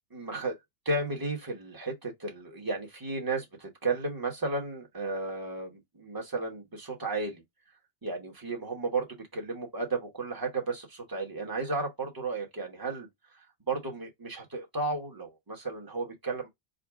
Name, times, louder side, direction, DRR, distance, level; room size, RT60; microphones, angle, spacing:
voice 1, 0.1-0.6 0.8-7.4 8.0-13.1 13.7-16.5, right 3 dB, 15° right, 0.9 m, -33 dB
5.0 x 2.0 x 3.5 m
omnidirectional pair, 1.5 m